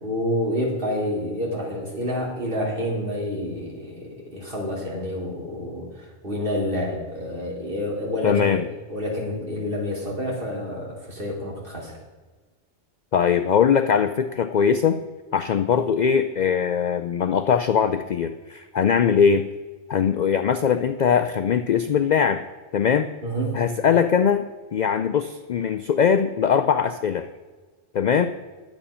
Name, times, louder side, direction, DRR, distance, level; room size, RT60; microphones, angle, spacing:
voice 1, 0.0-8.6 8.9-12.0 23.2-23.6, left 1 dB, 50° right, -3 dB, 3.0 m, -28 dB
voice 2, 8.2-8.6 13.1-15.0 15.3-19.5 19.9-22.4 22.7-23.1 23.5-27.3 27.9-28.3, left 7 dB, 60° left, 10 dB, 0.4 m, -21 dB
10.5 x 8.3 x 5.6 m, 1.3 s
omnidirectional pair, 1.2 m